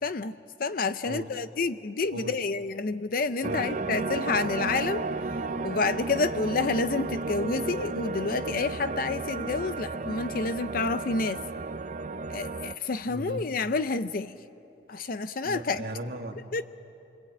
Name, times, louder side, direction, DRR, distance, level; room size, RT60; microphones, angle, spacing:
voice 1, 0.0-5.1 5.6-11.4 12.3-14.3 14.9-15.8 16.5-16.6, left 3 dB, 50° left, 12 dB, 0.6 m, -29 dB
sound 1, 3.4-12.7, right 3 dB, 45° right, 0.6 m, -33 dB
voice 2, 13.0-13.4 15.4-16.4, right 1 dB, 60° right, 3 dB, 2.1 m, -37 dB
27.5 x 25.0 x 8.8 m, 2.8 s
head